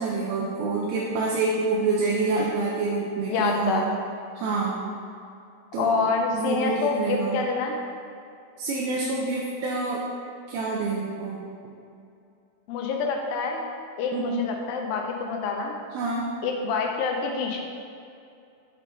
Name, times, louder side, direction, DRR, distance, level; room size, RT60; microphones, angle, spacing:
voice 1, 0.0-3.8 4.4-4.8 5.7-5.9 6.3-7.4 8.6-10.0 10.5-11.5 14.1-14.4 15.9-16.3, right 3 dB, 85° right, -4 dB, 2.5 m, -27 dB
voice 2, 3.3-3.9 5.8-7.8 12.7-13.7 14.0-15.8 16.4-17.6, left 4 dB, 80° left, 2 dB, 2.2 m, -26 dB
6.6 x 4.9 x 3.7 m, 2.5 s
omnidirectional pair, 4.3 m